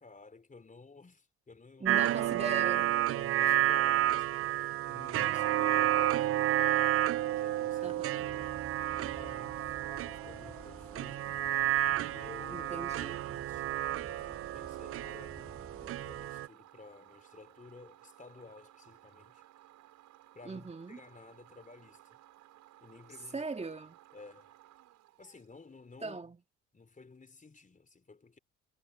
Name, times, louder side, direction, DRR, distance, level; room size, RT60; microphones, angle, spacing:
voice 1, 0.0-2.0 2.3-2.4 3.1-6.9 7.2-8.6 8.9-9.7 10.2-11.3 12.1-12.9 13.2-19.4 20.3-22.2 22.8-23.5 24.1-24.6 25.2-26.3 26.7-28.4, left 4 dB, 25° left, 3.8 m, -54 dB
voice 2, 1.8-2.9 7.8-8.3 12.5-13.2 20.4-21.0 23.3-24.0 26.0-26.4, right 4 dB, 20° right, 2.2 m, -39 dB
sound 1, 1.8-16.5, right 13 dB, 45° right, 0.5 m, -31 dB
sound 2, 8.0-26.0, right 14 dB, 70° right, 6.0 m, -59 dB
sound 3, 8.2-16.3, left 1 dB, 5° left, 1.6 m, -53 dB
hypercardioid pair, 60°, 31 cm